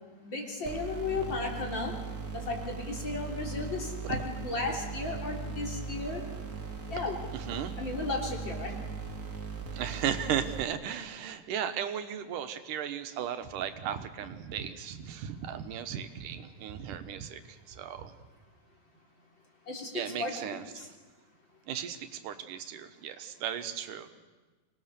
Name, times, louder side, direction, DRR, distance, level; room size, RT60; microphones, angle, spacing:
voice 1, 0.2-1.9 2.3-6.2 6.9-7.2 7.8-8.7 19.7-20.9, left 3 dB, 35° left, 0 dB, 4.1 m, -35 dB
sound 1, 0.6-10.6, right 5 dB, 35° right, 2.0 m, -39 dB
voice 2, 9.7-17.4 17.7-18.1 19.9-20.9 21.7-24.1, right 9 dB, 90° right, 10 dB, 2.7 m, -35 dB
25.0 x 19.5 x 6.8 m, 1.3 s
omnidirectional pair, 3.6 m